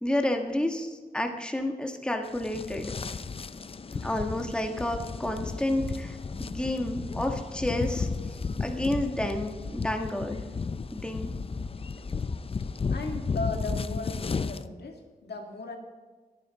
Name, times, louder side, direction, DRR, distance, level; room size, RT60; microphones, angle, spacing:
voice 1, 0.0-2.9 4.0-8.1 8.6-10.4 10.9-11.3, left 1 dB, 5° left, 3 dB, 1.4 m, -30 dB
sound 1, 2.3-14.6, left 4 dB, 35° left, 0.5 m, -34 dB
voice 2, 12.6-15.8, left 2 dB, 80° left, 3 dB, 2.0 m, -37 dB
23.0 x 9.2 x 4.1 m, 1.3 s
wide cardioid pair, 120°, 17 cm